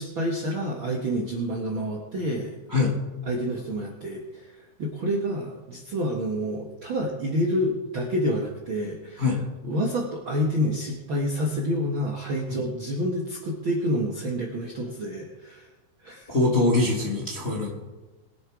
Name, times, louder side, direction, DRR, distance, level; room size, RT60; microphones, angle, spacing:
voice 1, 0.0-2.9 3.2-9.3 9.6-15.7 16.0-16.3, equal, 55° right, -1 dB, 1.5 m, -28 dB
voice 2, 16.3-17.7, left 2 dB, 25° left, -3 dB, 1.5 m, -23 dB
22.0 x 7.4 x 4.8 m, 1.1 s
omnidirectional pair, 4.0 m